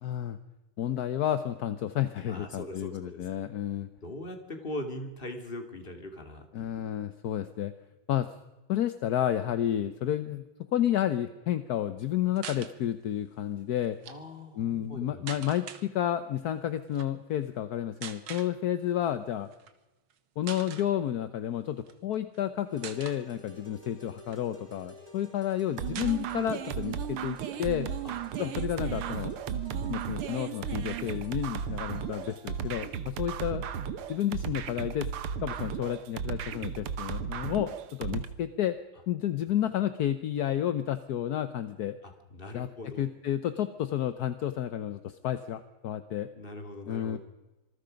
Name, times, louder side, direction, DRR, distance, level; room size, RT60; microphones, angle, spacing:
voice 1, 0.0-0.4 0.8-3.9 6.5-7.7 8.1-8.3 8.7-10.4 10.7-14.0 14.5-19.5 20.4-27.9 28.4-29.3 29.9-33.6 34.1-35.1 35.4-38.8 39.1-41.9 42.5-46.3 46.9-47.2, left 11 dB, 60° left, 11 dB, 1.1 m, -31 dB
voice 2, 2.3-3.3 4.0-6.9 14.1-15.2 28.0-28.5 42.0-43.1 46.4-47.2, left 1 dB, 25° left, 5 dB, 2.5 m, -41 dB
sound 1, 12.3-12.7 13.8-14.2 15.3-15.8 16.9-17.1 18.0-18.5 19.5-19.7 20.1-20.2 20.4-20.9 21.8-22.4 22.8-23.2 23.8-24.9 25.2-25.3 25.5-25.6 25.9-26.7 27.0-27.1 27.4-28.5, right 8 dB, 70° right, 2.0 m, -43 dB
sound 2, 22.7-33.0, equal, 15° right, 2.8 m, -53 dB
sound 3, 25.8-38.3, right 8 dB, 90° right, 2.0 m, -35 dB
26.5 x 20.0 x 5.2 m, 1.1 s
omnidirectional pair, 2.4 m